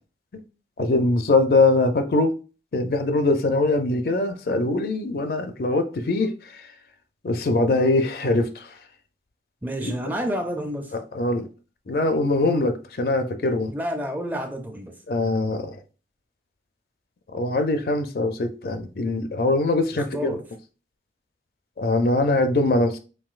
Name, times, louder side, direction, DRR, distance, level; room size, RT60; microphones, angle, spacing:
voice 1, 0.8-2.3 2.7-6.3 7.2-8.7 9.8-9.9 10.9-11.5 11.9-13.7 15.1-15.8 17.3-20.4 21.8-23.0, left 2 dB, 55° left, 0.5 m, -22 dB
voice 2, 9.6-10.9 13.7-14.9 19.9-20.4, equal, 10° right, 0.4 m, -29 dB
5.7 x 2.6 x 2.4 m
head